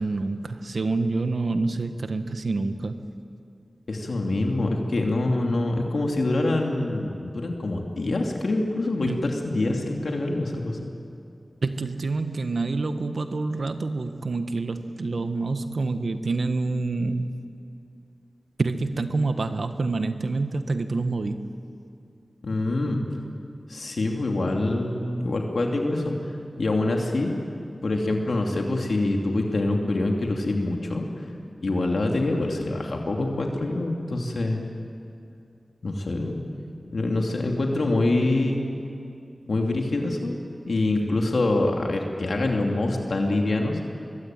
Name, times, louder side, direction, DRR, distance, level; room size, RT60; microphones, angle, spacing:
voice 1, 0.0-3.0 9.0-9.2 11.6-17.3 18.6-21.5, right 3 dB, 75° right, 8 dB, 1.4 m, -27 dB
voice 2, 3.9-10.9 22.4-23.0 23.7-26.2 26.6-27.4 27.8-31.1 31.6-34.6 35.8-36.4 36.9-38.6 39.5-40.3 40.7-43.8, left 2 dB, 80° left, 1 dB, 2.7 m, -25 dB
24.0 x 22.0 x 9.1 m, 2.5 s
wide cardioid pair, 60°, 0 cm